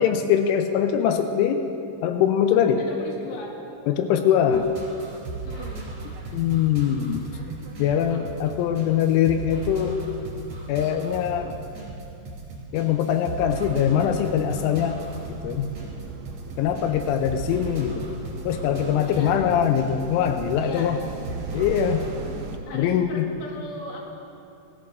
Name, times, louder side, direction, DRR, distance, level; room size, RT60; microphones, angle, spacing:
voice 1, 0.0-1.7 2.0-2.9 3.9-4.7 6.3-7.2 7.8-10.0 10.7-11.6 12.7-15.0 15.3-15.7 16.6-18.1 18.4-21.0 21.5-22.1 22.7-23.3, left 9 dB, 90° left, 6 dB, 3.1 m, -22 dB
voice 2, 2.7-3.5 5.4-5.9 7.8-8.2 8.9-9.0 19.0-19.4 20.6-21.0 22.7-24.1, left 2 dB, 60° left, -2 dB, 3.0 m, -39 dB
sound 1, 4.5-22.3, right 3 dB, 35° right, 3.3 m, -37 dB
sound 2, 14.1-22.6, right 4 dB, 80° right, 2.3 m, -39 dB
19.0 x 13.5 x 2.6 m, 2.8 s
omnidirectional pair, 5.6 m